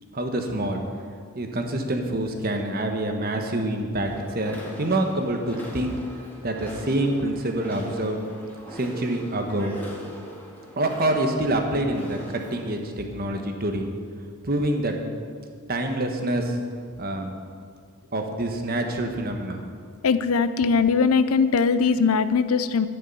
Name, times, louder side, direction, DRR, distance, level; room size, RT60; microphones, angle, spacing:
voice 1, 0.1-0.8 1.3-5.9 6.4-8.2 8.7-9.8 10.8-13.9 14.4-15.0 15.7-16.6 17.0-17.3 18.1-19.6, right 1 dB, 45° right, 4 dB, 1.2 m, -26 dB
sound 1, 4.0-12.8, equal, 10° left, 2.0 m, -42 dB
voice 2, 20.0-22.9, left 5 dB, 75° left, 13 dB, 0.5 m, -20 dB
11.5 x 9.6 x 5.5 m, 2.1 s
head